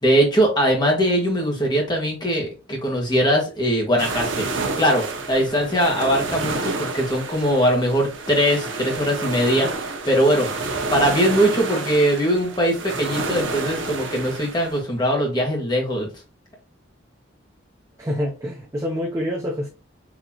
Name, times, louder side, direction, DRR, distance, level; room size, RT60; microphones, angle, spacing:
voice 1, 0.0-16.1, equal, 25° left, 1.2 m, -21 dB
sound 1, 4.0-14.8, right 3 dB, 85° right, 0.7 m, -29 dB
voice 2, 18.0-19.7, equal, 15° right, 0.5 m, -26 dB
4.0 x 2.8 x 2.8 m
head